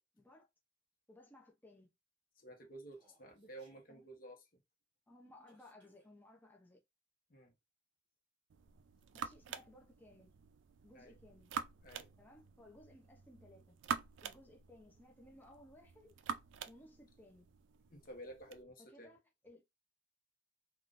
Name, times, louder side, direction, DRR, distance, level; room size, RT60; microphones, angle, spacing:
voice 1, 0.1-0.5 1.1-1.9 3.9-4.0 5.1-6.8 9.1-10.3 10.8-11.5 12.2-13.8 14.2-16.1 16.7-17.6 18.8-19.6, left 1 dB, 10° left, 0.6 m, -60 dB
voice 2, 2.3-4.6 7.3-7.5 10.9-11.2 11.8-12.1 17.9-19.1, right 1 dB, 45° left, 1.0 m, -53 dB
Human voice, 2.9-3.9 5.5-6.1, right 2 dB, 25° right, 1.3 m, -73 dB
sound 1, 8.5-18.6, right 6 dB, 70° right, 0.4 m, -47 dB
3.6 x 2.4 x 2.5 m
head